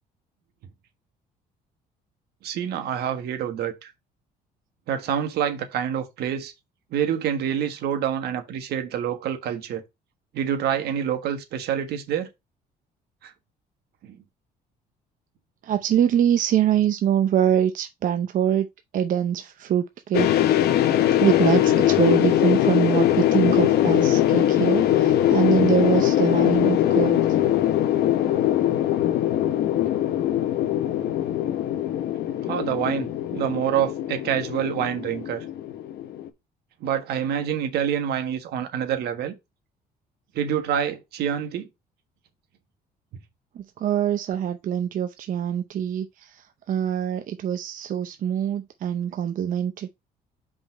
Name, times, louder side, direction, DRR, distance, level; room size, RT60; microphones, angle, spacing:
voice 1, 2.4-3.9 4.9-6.5 6.9-9.8 10.3-12.3 13.2-13.3 14.0-14.2 32.5-35.4 36.8-39.4 40.3-41.7, right 9 dB, 70° right, 1.5 m, -27 dB
voice 2, 15.6-18.7 18.9-20.3 21.2-27.2 43.6-49.9, right 9 dB, 50° right, 0.6 m, -24 dB
sound 1, 20.1-36.3, left 12 dB, 70° left, 1.0 m, -21 dB
5.4 x 3.8 x 5.2 m
cardioid pair, 110°, 17 cm